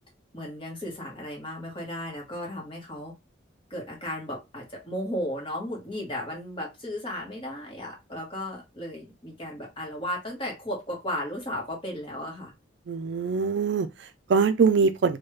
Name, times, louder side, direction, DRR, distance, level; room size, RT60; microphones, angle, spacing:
voice 1, 0.3-3.1 3.7-12.5, left 1 dB, 25° left, 1.2 m, -35 dB
voice 2, 12.9-15.2, right 5 dB, 60° right, 0.4 m, -23 dB
3.1 x 2.3 x 3.1 m
head